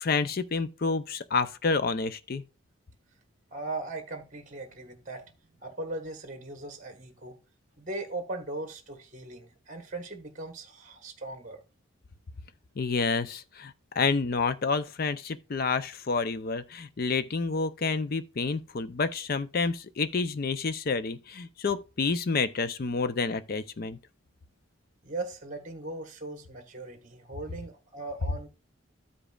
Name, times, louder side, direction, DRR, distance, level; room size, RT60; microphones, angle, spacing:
voice 1, 0.0-2.4 12.8-24.0, left 4 dB, 45° left, 0.5 m, -29 dB
voice 2, 3.5-5.3 5.6-7.3 7.8-11.6 25.0-28.5, right 2 dB, 35° right, 1.2 m, -39 dB
14.0 x 5.0 x 2.4 m
head